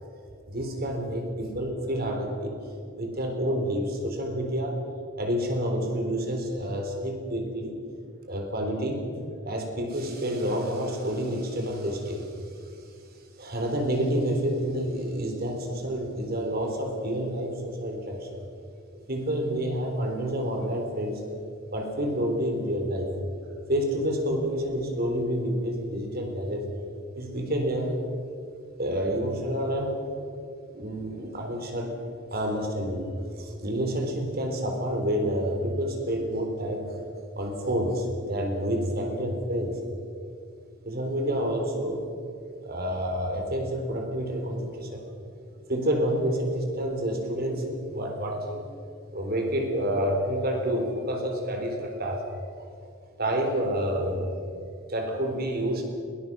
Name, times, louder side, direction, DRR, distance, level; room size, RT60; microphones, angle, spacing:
voice 1, 0.5-2.5 3.0-4.8 5.2-7.7 8.3-9.0 9.4-12.3 13.4-18.4 19.1-21.1 21.7-23.1 23.7-26.6 27.2-28.0 28.8-30.0 30.7-31.9 32.3-33.1 33.4-36.8 37.4-39.7 40.8-42.0 42.6-45.0 45.7-47.6 47.9-48.6 49.1-52.3 52.6-52.7 53.2-54.4 54.9-55.8, equal, 50° right, 3 dB, 3.9 m, -28 dB
21.5 x 20.0 x 6.2 m, 2.5 s
head